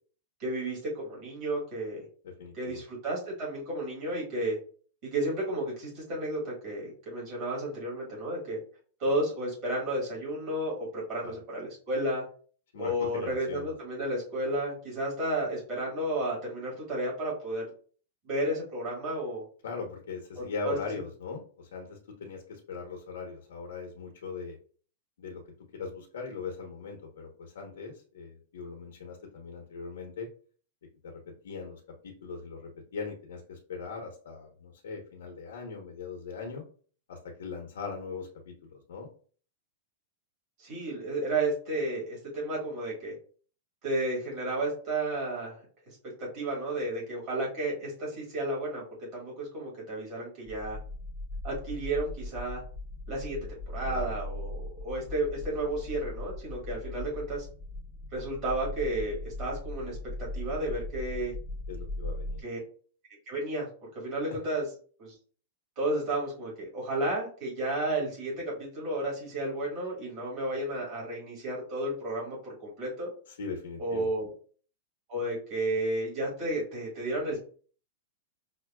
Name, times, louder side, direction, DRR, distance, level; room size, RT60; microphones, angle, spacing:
voice 1, 0.4-2.0 2.5-4.6 5.0-8.6 9.0-12.2 12.8-17.6 18.2-19.4 20.4-20.8 40.6-43.1 43.8-45.6 46.2-48.8 49.1-50.8 51.4-52.6 53.1-53.4 53.7-57.5 58.1-61.3 62.4-62.6 63.3-64.7 65.0-65.1 65.8-73.1 73.8-74.3 75.1-77.4, right 1 dB, 30° right, -4 dB, 1.6 m, -32 dB
voice 2, 2.2-2.8 11.2-11.3 12.7-13.7 19.6-24.6 25.2-25.4 25.7-30.3 31.0-36.6 37.1-39.1 53.8-54.1 61.7-62.4 73.3-74.1, left 4 dB, 90° left, 0 dB, 1.0 m, -40 dB
sound 1, 50.5-62.4, left 2 dB, 10° left, 0.8 m, -39 dB
6.0 x 2.2 x 2.3 m, 0.42 s
supercardioid pair, 180°, 0 cm